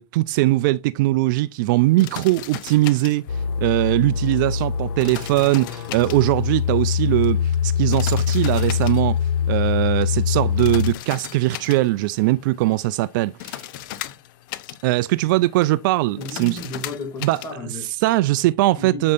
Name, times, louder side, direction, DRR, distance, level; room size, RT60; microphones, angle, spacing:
voice 1, 0.0-3.3 3.6-13.6 14.8-16.6 17.2-17.4 18.0-19.1, right 18 dB, 50° right, 0.4 m, -20 dB
sound 1, 1.8-17.5, left 14 dB, 50° left, 0.8 m, -39 dB
sound 2, 3.3-10.9, left 7 dB, 75° left, 1.0 m, -23 dB
voice 2, 16.2-17.9 18.8-19.1, left 2 dB, 25° left, 2.5 m, -34 dB
7.7 x 5.3 x 2.5 m
supercardioid pair, 140°, 13 cm